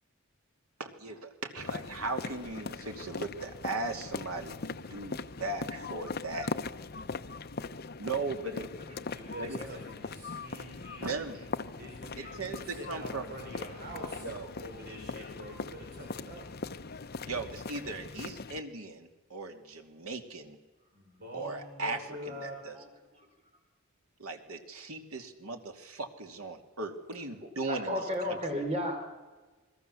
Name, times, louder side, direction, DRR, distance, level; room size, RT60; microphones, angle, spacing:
voice 1, 0.8-6.5 8.0-8.7 9.4-9.6 11.0-11.4 12.2-13.3 14.2-14.5 17.2-20.6 21.3-22.8 24.2-28.6, right 3 dB, 80° right, 4 dB, 2.8 m, -38 dB
sound 1, 1.6-18.6, left 4 dB, 45° left, 0.8 m, -40 dB
voice 2, 9.1-11.1 11.8-14.3 14.6-16.5 20.9-22.6, equal, 45° right, 0 dB, 5.5 m, -45 dB
voice 3, 27.4-29.0, equal, 30° right, 4 dB, 3.9 m, -33 dB
29.0 x 21.0 x 7.1 m, 1.3 s
head